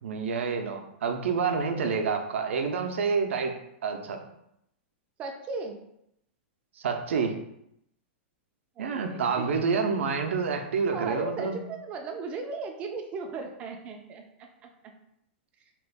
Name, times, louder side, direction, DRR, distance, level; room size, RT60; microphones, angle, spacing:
voice 1, 0.0-3.5 3.8-4.2 6.8-7.4 8.8-11.6, right 5 dB, 85° right, 5 dB, 0.5 m, -28 dB
voice 2, 5.2-5.8 8.8-9.8 10.9-14.9, right 4 dB, 20° right, 4 dB, 0.3 m, -37 dB
2.9 x 2.4 x 3.3 m, 0.78 s
supercardioid pair, 165°, 7 cm